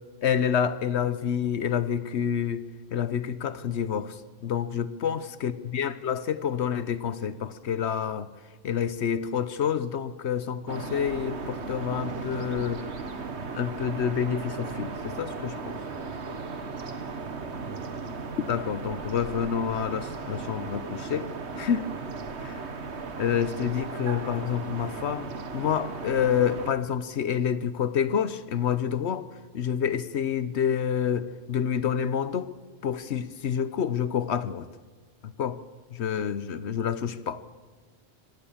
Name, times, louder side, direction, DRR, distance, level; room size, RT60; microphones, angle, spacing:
voice 1, 0.2-2.6 2.9-8.3 8.6-12.8 13.5-15.6 18.4-21.3 21.6-21.9 22.4-22.6 23.2-29.3 29.5-32.5 32.8-34.7 35.2-35.6 35.9-37.4, left 8 dB, 80° left, 14 dB, 1.1 m, -28 dB
sound 1, 10.7-26.7, right 4 dB, 90° right, 1.7 m, -36 dB
voice 2, 15.5-17.6 21.6-22.0, equal, 35° left, -6 dB, 7.7 m, -53 dB
25.0 x 17.5 x 7.2 m, 1.4 s
omnidirectional pair, 1.1 m